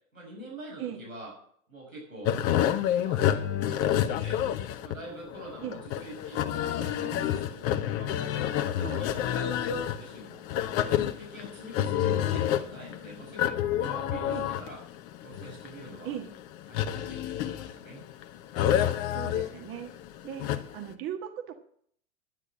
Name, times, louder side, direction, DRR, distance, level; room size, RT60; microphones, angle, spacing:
voice 1, 0.1-1.3 1.7-2.5 3.0-4.4 4.8-8.5 8.8-10.5 10.8-14.8 15.2-16.1 16.7-18.0, right 1 dB, 85° right, -3 dB, 5.9 m, -45 dB
sound 1, 2.2-20.9, left 10 dB, 35° left, 1.0 m, -29 dB
voice 2, 19.1-19.9 20.2-20.5 20.7-21.6, right 10 dB, 30° right, 7 dB, 1.5 m, -38 dB
10.5 x 9.5 x 7.5 m, 0.62 s
figure-of-eight pair, 90°, 40 cm